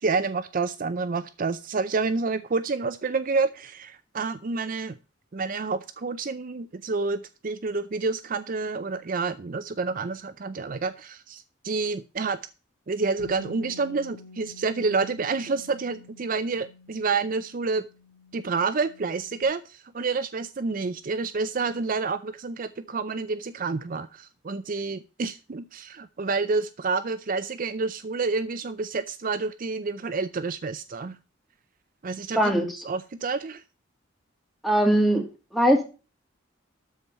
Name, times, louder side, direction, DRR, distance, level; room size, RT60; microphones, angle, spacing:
voice 1, 0.0-5.0 5.3-12.4 12.9-17.9 18.3-31.2 32.0-32.5 32.8-33.6, right 4 dB, 45° right, 12 dB, 0.5 m, -29 dB
Bass guitar, 13.2-19.4, left 3 dB, 50° left, 2.3 m, -49 dB
voice 2, 32.3-32.8 34.6-35.2 35.5-35.8, right 1 dB, ahead, 1 dB, 2.7 m, -21 dB
13.0 x 4.6 x 6.8 m, 0.33 s
head